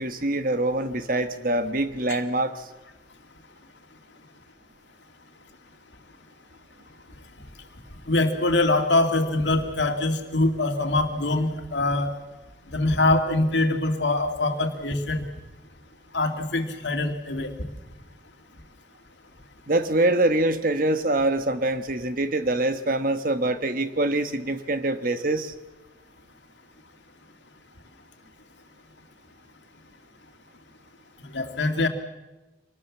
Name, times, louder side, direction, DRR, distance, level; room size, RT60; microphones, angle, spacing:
voice 1, 0.0-2.7 19.7-25.5, right 2 dB, 45° right, 9 dB, 1.3 m, -24 dB
voice 2, 8.1-12.1 12.7-15.2 16.1-17.5 31.3-31.9, left 2 dB, 70° left, 5 dB, 2.4 m, -23 dB
25.0 x 19.5 x 7.3 m, 1.1 s
head